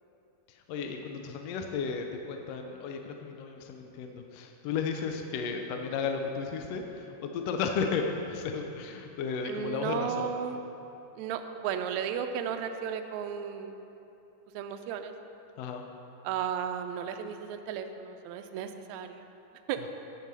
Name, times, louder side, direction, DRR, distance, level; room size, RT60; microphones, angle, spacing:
voice 1, 0.5-10.3 15.6-15.8, left 5 dB, 80° left, 4 dB, 1.4 m, -34 dB
voice 2, 9.5-10.6 11.2-13.7 14.5-15.1 16.2-19.2 19.7-19.8, right 8 dB, 85° right, 7 dB, 1.6 m, -34 dB
8.7 x 8.3 x 6.2 m, 2.9 s
omnidirectional pair, 3.7 m